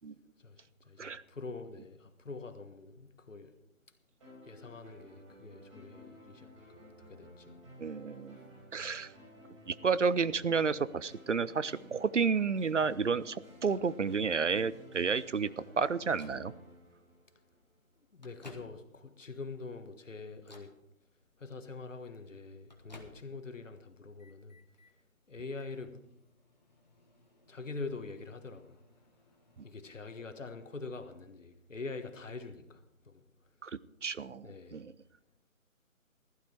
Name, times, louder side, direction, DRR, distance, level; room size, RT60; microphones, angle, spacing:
voice 1, 0.4-3.6 4.4-6.8 7.1-7.6 8.3-8.5 18.1-20.7 21.4-24.6 25.3-26.0 27.5-28.8 29.6-33.2 34.4-34.8, left 3 dB, 60° left, 1.5 m, -45 dB
sound 1, 4.2-17.7, equal, 25° right, 5.9 m, -54 dB
voice 2, 7.8-8.4 8.7-9.1 9.7-16.5 33.6-33.7 34.0-34.9, right 5 dB, 60° right, 0.5 m, -31 dB
Microwave oven, 16.2-16.5 17.4-17.5 18.0-19.1 19.6-20.0 20.4-20.8 22.0-23.5 23.9-24.9 25.5-29.7, left 2 dB, 30° left, 1.3 m, -58 dB
15.5 x 11.5 x 4.5 m
figure-of-eight pair, 175°, 42 cm